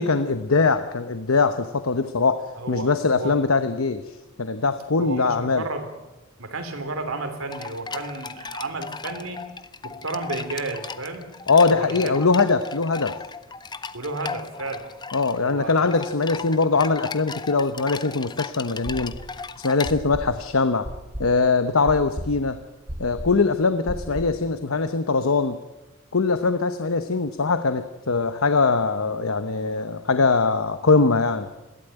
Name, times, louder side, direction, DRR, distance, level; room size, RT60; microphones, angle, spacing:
voice 1, 0.0-5.6 11.5-13.2 15.1-19.1 19.6-20.9 21.2-22.6 23.0-25.6 26.1-31.5, left 4 dB, 75° left, 10 dB, 0.9 m, -22 dB
voice 2, 2.5-3.4 5.0-5.9 6.4-9.4 9.8-11.3 11.7-12.1 13.9-14.9 15.4-15.9 16.3-16.4 16.7-16.8, right 2 dB, 80° right, 6 dB, 3.3 m, -32 dB
sound 1, 7.5-19.9, left 4 dB, 20° left, 0.6 m, -36 dB
sound 2, 18.8-19.4 19.8-24.5, equal, 50° right, 2.5 m, -35 dB
21.5 x 15.5 x 9.1 m, 1.1 s
head